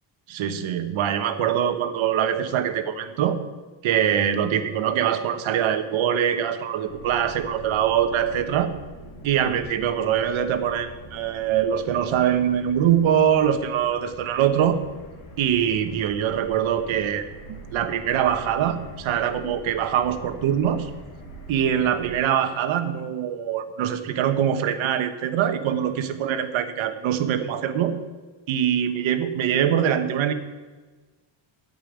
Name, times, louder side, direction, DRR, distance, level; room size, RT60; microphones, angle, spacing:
voice 1, 0.3-3.4 3.8-8.7 9.2-14.8 15.4-20.9 21.5-27.9 28.5-30.3, right 9 dB, 70° right, 9 dB, 1.2 m, -23 dB
sound 1, 6.9-22.2, right 2 dB, 55° left, 3.8 m, -43 dB
14.0 x 5.5 x 9.3 m, 1.3 s
cardioid pair, 175°, 49 cm